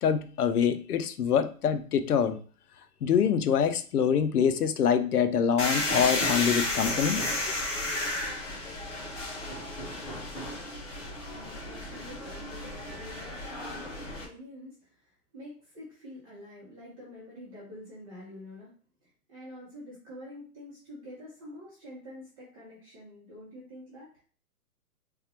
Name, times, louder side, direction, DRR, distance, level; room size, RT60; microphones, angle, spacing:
voice 1, 0.0-2.4 3.0-7.2, left 7 dB, 75° left, 9 dB, 0.7 m, -25 dB
sound 1, 5.6-14.2, left 2 dB, 40° left, 1.5 m, -33 dB
voice 2, 11.3-18.7 19.0-24.1, left 1 dB, 20° right, -8 dB, 1.5 m, -47 dB
3.8 x 2.9 x 3.0 m, 0.40 s
hypercardioid pair, 180°, 46 cm